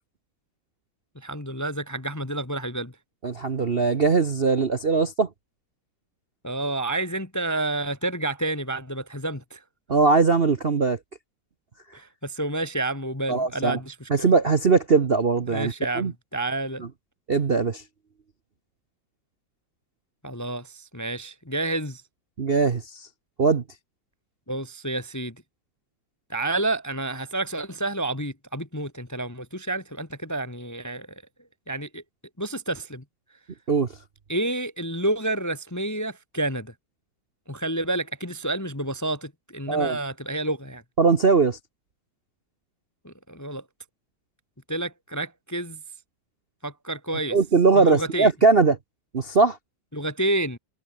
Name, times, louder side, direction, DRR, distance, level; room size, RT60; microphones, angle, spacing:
voice 1, 1.1-2.9 6.4-9.6 11.9-14.3 15.5-16.9 20.2-22.0 24.5-25.4 26.3-31.1 31.7-32.0 32.4-33.0 34.3-36.7 37.5-40.8 43.0-43.6 44.7-45.8 46.6-47.4 47.7-48.3 49.9-50.6, right 2 dB, 10° left, 1.0 m, -29 dB
voice 2, 3.2-5.3 9.9-11.0 13.3-13.8 14.1-16.1 17.3-17.8 22.4-23.1 23.4-23.6 33.7-33.9 39.7-40.0 41.0-41.6 47.3-48.8 49.1-49.6, right 4 dB, 40° right, 1.0 m, -20 dB
omnidirectional pair, 2.2 m